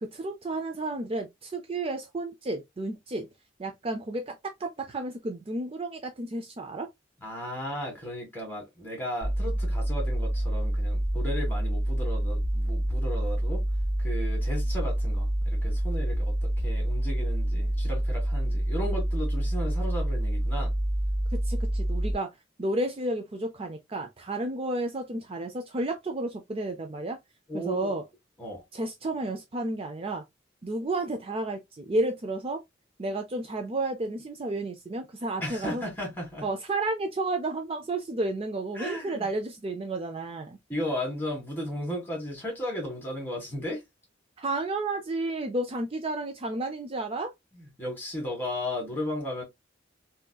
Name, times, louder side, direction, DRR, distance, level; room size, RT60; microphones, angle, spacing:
voice 1, 0.0-3.3 3.6-6.9 21.3-22.3 22.6-27.2 27.5-28.0 28.7-30.2 30.6-32.6 33.0-35.8 36.4-40.6 44.4-47.3, right 2 dB, 30° right, 0.5 m, -32 dB
voice 2, 7.2-13.6 14.0-20.7 27.5-27.9 28.4-28.6 35.4-36.5 38.7-39.3 40.7-43.8 47.5-49.4, left 1 dB, 10° left, 1.8 m, -35 dB
sound 1, 9.2-22.1, right 1 dB, 35° left, 2.0 m, -27 dB
3.7 x 2.7 x 2.3 m
head